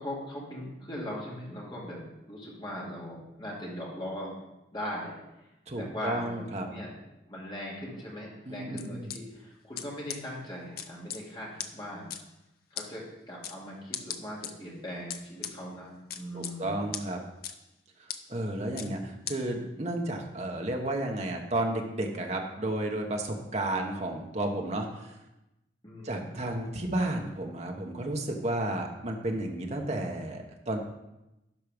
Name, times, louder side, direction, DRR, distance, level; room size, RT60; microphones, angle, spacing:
voice 1, 0.0-4.3 4.7-5.2 5.8-6.9 7.3-12.1 12.7-16.8 25.8-26.4, equal, 25° left, -4 dB, 2.4 m, -39 dB
voice 2, 5.7-6.6 8.5-9.1 16.3-17.2 18.0-25.2 26.0-30.8, right 1 dB, 35° right, 2 dB, 1.1 m, -32 dB
sound 1, 8.8-9.2 9.8-9.9 10.1-10.2 10.8-11.2 11.6-11.7 12.1-12.2 12.8-12.9 13.4-13.6 13.9-14.5 15.1-15.5 16.1-16.5 16.9-17.0 17.4-17.5 18.1-18.2 18.8-18.9 19.3-19.4, left 9 dB, 50° left, 0.6 m, -36 dB
12.0 x 4.8 x 5.2 m, 0.94 s
head